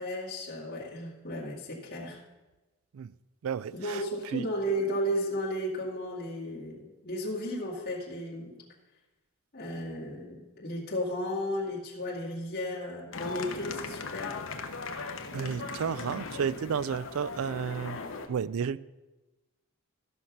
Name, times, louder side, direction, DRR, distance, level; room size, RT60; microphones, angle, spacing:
voice 1, 0.0-2.2 3.7-8.5 9.5-14.4, equal, 45° left, -6 dB, 2.2 m, -34 dB
voice 2, 3.4-4.0 4.3-4.5 15.3-18.0 18.3-18.8, right 7 dB, 75° right, 18 dB, 0.4 m, -32 dB
sound 1, 13.1-18.3, left 4 dB, 65° left, 0.9 m, -38 dB
13.5 x 5.7 x 6.0 m, 1.1 s
head